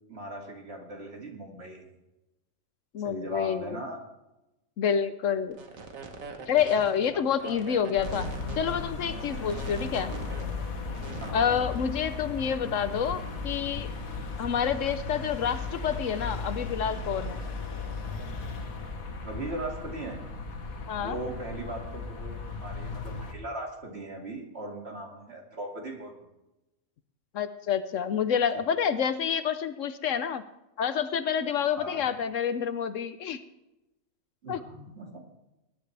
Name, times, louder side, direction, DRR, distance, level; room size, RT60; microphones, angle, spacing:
voice 1, 0.1-1.9 3.0-4.0 7.0-7.6 10.1-10.5 11.2-11.7 19.2-20.2 21.0-26.2 28.5-28.6 31.8-32.1 34.4-35.2, right 1 dB, 50° right, 0 dB, 2.7 m, -39 dB
voice 2, 2.9-3.8 4.8-5.6 6.5-8.2 8.6-10.1 11.3-13.9 14.4-17.4 20.9-21.2 27.3-30.4 30.8-33.4 34.5-34.6, left 8 dB, 70° left, 12 dB, 1.0 m, -28 dB
sound 1, 5.5-11.3, right 3 dB, 75° right, 1.7 m, -42 dB
sound 2, 8.0-23.3, left 3 dB, 85° left, 1.8 m, -36 dB
20.5 x 10.5 x 3.3 m, 0.95 s
omnidirectional pair, 1.4 m